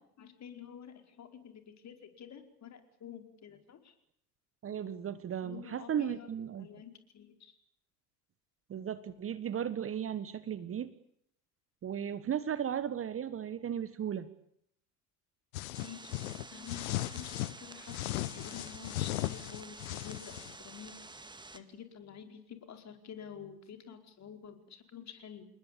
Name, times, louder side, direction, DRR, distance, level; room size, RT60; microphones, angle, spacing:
voice 1, 0.2-3.9 5.4-7.5 15.8-25.5, left 8 dB, 35° left, 6 dB, 4.8 m, -49 dB
voice 2, 4.6-6.7 8.7-10.9 11.8-14.3, right 9 dB, 25° right, 14 dB, 1.5 m, -35 dB
sound 1, 15.5-17.6 17.9-20.6, left 17 dB, 60° left, 1.0 m, -37 dB
sound 2, 15.7-21.6, right 3 dB, 10° right, 2.1 m, -50 dB
29.0 x 20.5 x 8.8 m, 0.72 s
figure-of-eight pair, 70°, 48 cm